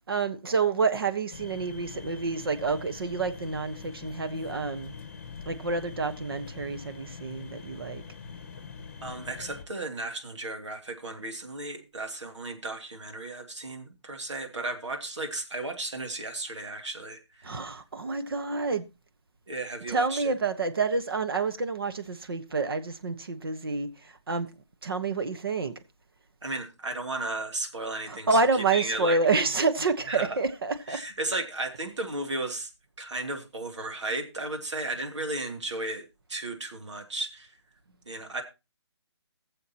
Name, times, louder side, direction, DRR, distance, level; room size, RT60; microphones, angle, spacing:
voice 1, 0.1-4.9 5.4-8.0 17.4-18.8 19.9-24.5 24.8-25.7 28.0-31.0, right 4 dB, 55° right, 1.3 m, -28 dB
sound 1, 1.3-9.6, left 5 dB, 25° left, 1.0 m, -43 dB
voice 2, 9.0-17.5 19.5-20.3 26.4-29.2 30.1-30.4 30.9-32.7 33.0-37.6 37.9-38.4, right 2 dB, 90° right, 2.8 m, -34 dB
21.5 x 7.3 x 3.0 m
hypercardioid pair, 180°, 15 cm